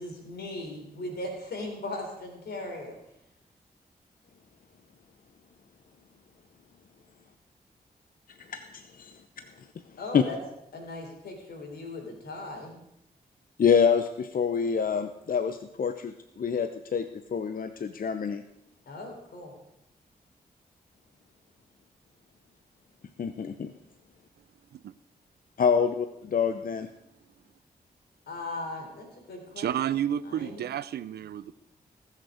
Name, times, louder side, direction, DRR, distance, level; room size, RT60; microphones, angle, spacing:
voice 1, 0.0-3.0 10.0-10.4 10.7-12.8 18.9-19.5 28.3-29.7 30.3-30.6, left 2 dB, 85° left, 3.6 m, -38 dB
voice 2, 8.5-9.1 10.1-10.2 13.6-18.4 23.2-23.7 25.6-26.9, left 6 dB, 60° left, 0.8 m, -26 dB
voice 3, 29.6-31.5, right 10 dB, 85° right, 0.5 m, -31 dB
19.5 x 6.7 x 5.0 m
cardioid pair, 50°, 16 cm